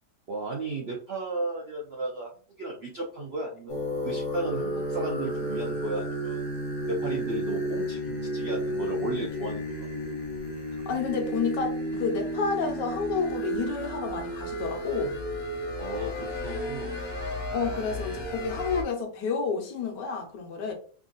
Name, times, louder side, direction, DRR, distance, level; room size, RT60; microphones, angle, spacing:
voice 1, 0.3-2.3 2.6-6.4 6.9-9.9 15.8-17.0, right 2 dB, 90° right, 0.5 m, -34 dB
sound 1, 3.7-18.8, equal, 60° left, 1.2 m, -32 dB
voice 2, 10.9-15.2 17.5-20.7, left 5 dB, 80° left, 1.4 m, -30 dB
3.5 x 2.4 x 3.8 m
omnidirectional pair, 1.9 m